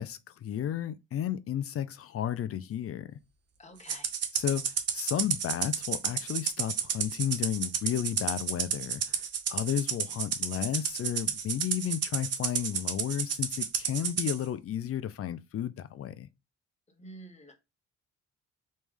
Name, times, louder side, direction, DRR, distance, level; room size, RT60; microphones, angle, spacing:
voice 1, 0.0-3.1 4.3-9.2 9.5-16.3, left 10 dB, 50° left, 0.5 m, -33 dB
voice 2, 3.6-4.1 17.0-17.6, right 1 dB, 20° left, 1.2 m, -48 dB
Rattle (instrument), 3.9-14.4, right 7 dB, 55° right, 0.8 m, -31 dB
3.2 x 3.2 x 3.4 m
cardioid pair, 90°, 30 cm